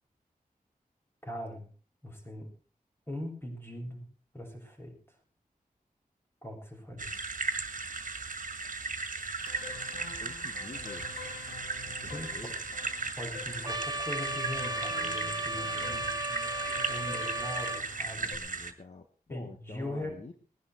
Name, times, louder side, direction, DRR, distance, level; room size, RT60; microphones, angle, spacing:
voice 1, 1.3-1.7 2.0-2.5 3.1-4.1 4.3-4.9 6.4-7.1 12.0-12.6 13.2-18.7 19.3-20.3, left 1 dB, 15° left, 1 dB, 7.5 m, -41 dB
sound 1, 7.0-18.7, right 4 dB, 60° right, 1.9 m, -37 dB
sound 2, 9.4-18.4, left 5 dB, 85° left, 1.9 m, -46 dB
voice 2, 10.2-11.1 11.9-12.8 15.5-16.1 18.2-20.3, left 3 dB, 50° left, 6 dB, 1.5 m, -49 dB
Trumpet, 13.6-17.8, right 2 dB, 25° right, 0.8 m, -35 dB
21.0 x 11.0 x 4.6 m, 0.39 s
wide cardioid pair, 65°, 15 cm